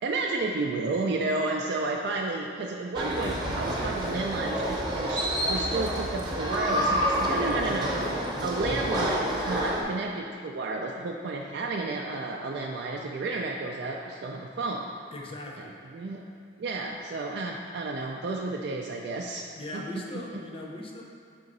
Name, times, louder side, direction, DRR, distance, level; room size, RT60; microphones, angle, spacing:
voice 1, 0.0-7.9 8.4-14.9 15.9-16.2 16.6-19.8, right 3 dB, 60° right, 0 dB, 0.3 m, -32 dB
sound 1, 2.9-9.8, equal, 25° right, 0.8 m, -28 dB
voice 2, 15.1-15.7 19.6-21.0, left 1 dB, 30° left, -1 dB, 0.7 m, -39 dB
4.8 x 3.8 x 5.3 m, 2.2 s
head